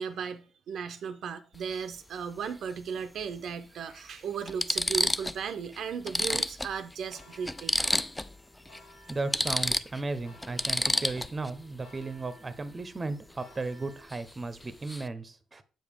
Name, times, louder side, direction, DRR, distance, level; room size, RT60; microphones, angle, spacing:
voice 1, 0.0-7.9, right 6 dB, 65° right, 0.5 m, -36 dB
sound 1, 1.5-1.7 3.2-3.3 4.0-4.1 4.5-5.4 5.7-5.8 6.1-8.4 8.6-8.8 9.1-11.5 14.1-14.3 14.6-15.1, left 1 dB, 10° left, 0.3 m, -30 dB
sound 2, 5.6-14.1, left 2 dB, 70° left, 2.3 m, -57 dB
voice 2, 9.1-15.6, right 3 dB, 25° right, 0.7 m, -35 dB
7.7 x 4.9 x 3.5 m
cardioid pair, 90°, 0 cm